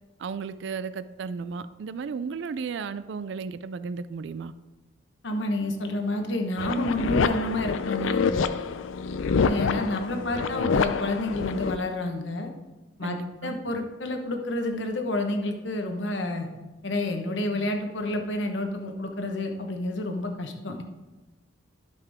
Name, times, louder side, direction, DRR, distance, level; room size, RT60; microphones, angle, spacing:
voice 1, 0.2-4.5 13.0-13.6, right 5 dB, 65° right, 14 dB, 0.3 m, -34 dB
voice 2, 5.2-8.5 9.4-12.5 13.0-16.5 16.8-20.8, left 1 dB, 65° left, 4 dB, 1.1 m, -29 dB
sound 1, 6.6-11.8, left 5 dB, 85° left, 0.4 m, -27 dB
11.5 x 5.9 x 3.5 m, 1.1 s
head